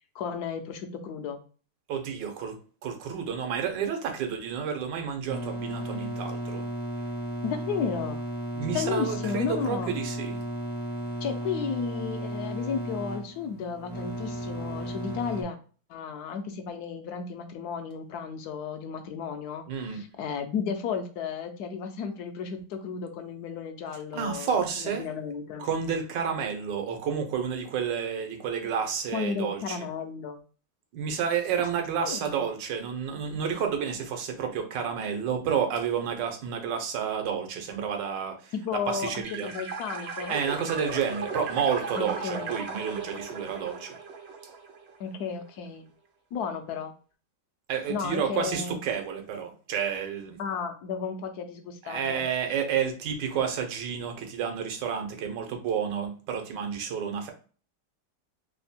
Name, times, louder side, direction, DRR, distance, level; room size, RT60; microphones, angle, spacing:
voice 1, 0.1-1.4 7.4-8.2 8.7-9.9 11.2-15.6 15.9-19.6 19.9-25.7 29.1-30.4 32.0-32.5 38.5-40.3 42.0-42.5 45.0-45.9 46.3-46.9 47.9-48.8 50.4-52.2, left 6 dB, 70° left, 6 dB, 1.0 m, -33 dB
voice 2, 1.9-2.6 2.8-6.7 8.5-10.4 19.7-20.0 24.1-25.0 25.6-29.8 30.9-38.5 38.9-39.5 40.3-44.0 47.7-50.4 51.8-57.3, right 7 dB, 85° right, 5 dB, 1.5 m, -30 dB
sound 1, 5.3-15.4, right 1 dB, 10° left, 0.5 m, -34 dB
sound 2, 39.2-45.0, right 4 dB, 65° right, 0.6 m, -37 dB
3.4 x 2.1 x 4.1 m, 0.38 s
omnidirectional pair, 1.9 m